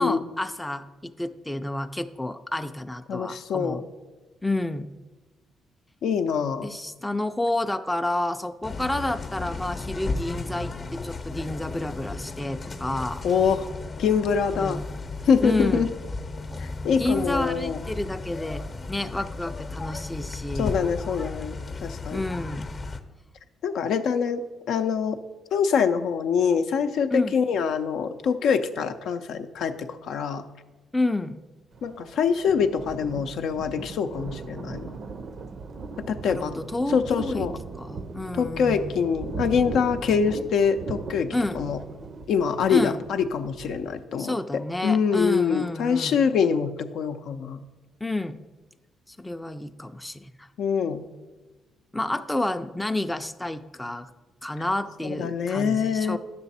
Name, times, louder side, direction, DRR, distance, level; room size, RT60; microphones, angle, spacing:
voice 1, 0.0-3.9 4.4-4.9 6.6-13.2 14.6-14.9 15.4-15.9 17.0-18.6 18.9-20.8 22.1-22.7 27.1-27.4 30.9-31.4 36.2-37.5 37.7-39.1 41.3-41.6 42.7-43.1 44.2-46.2 48.0-48.4 49.1-50.5 51.9-54.1 54.4-56.2, left 2 dB, 10° left, 8 dB, 0.4 m, -29 dB
voice 2, 3.1-3.8 6.0-6.7 13.2-13.6 14.0-14.8 15.3-15.9 16.6-17.8 20.6-22.2 23.6-24.4 24.7-25.2 25.5-30.4 31.8-34.9 36.1-36.5 36.9-37.5 38.4-41.8 42.3-44.3 44.8-47.6 50.6-51.0 55.0-56.2, left 6 dB, 75° left, 7 dB, 0.5 m, -24 dB
sound 1, 8.6-23.0, left 3 dB, 40° left, 0.8 m, -35 dB
Thunder, 31.7-44.0, right 4 dB, 50° right, 0.5 m, -38 dB
9.9 x 6.8 x 4.1 m, 1.2 s
cardioid pair, 90°, 0 cm